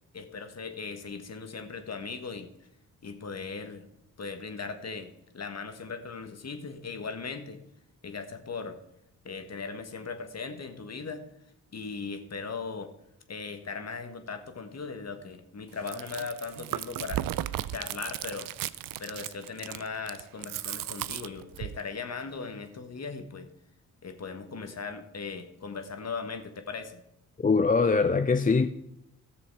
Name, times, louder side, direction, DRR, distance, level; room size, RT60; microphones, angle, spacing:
voice 1, 0.1-2.5 3.0-3.9 4.2-7.6 8.0-8.8 9.2-11.2 11.7-12.9 13.3-17.2 17.7-18.5 19.0-23.5 24.0-27.0, left 4 dB, 45° left, 7 dB, 1.6 m, -38 dB
Chewing mastication, 15.7-21.8, right 13 dB, 65° right, 0.5 m, -35 dB
voice 2, 27.4-28.7, left 4 dB, 20° left, 9 dB, 0.6 m, -22 dB
13.5 x 6.8 x 4.9 m, 0.80 s
supercardioid pair, 50°, 37 cm